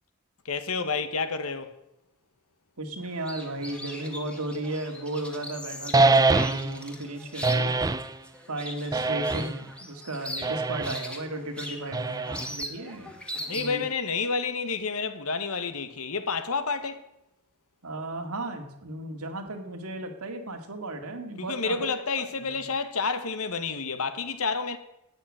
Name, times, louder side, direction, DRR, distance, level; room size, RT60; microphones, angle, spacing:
voice 1, 0.4-1.7 13.5-17.0 21.4-24.8, left 4 dB, 70° left, 1.4 m, -29 dB
voice 2, 2.8-7.8 8.5-13.8 17.8-21.9 22.2-22.5, right 2 dB, 75° right, 2.2 m, -35 dB
sound 1, 3.0-13.9, equal, 5° left, 1.9 m, -40 dB
sound 2, 5.9-6.8 7.4-8.1 8.9-9.7 10.4-11.0 11.9-12.6, right 3 dB, 15° right, 0.5 m, -24 dB
12.5 x 9.2 x 8.7 m
head